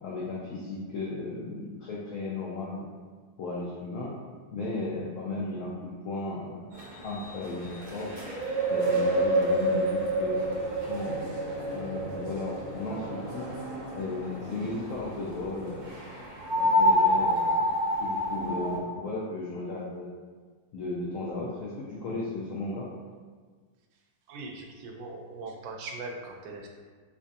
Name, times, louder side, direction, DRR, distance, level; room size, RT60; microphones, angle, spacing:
voice 1, 0.0-2.9 3.4-4.1 4.5-6.7 7.0-8.1 8.7-10.4 10.8-11.3 11.7-13.5 14.0-16.0 16.5-17.7 18.0-20.1 20.7-22.9, left 2 dB, 90° left, -4 dB, 0.7 m, -35 dB
sound 1, 6.7-15.2 15.8-18.8, equal, 60° right, 1.2 m, -28 dB
voice 2, 24.3-26.7, right 3 dB, 90° right, 1 dB, 1.3 m, -40 dB
4.6 x 2.6 x 2.5 m, 1.5 s
omnidirectional pair, 2.0 m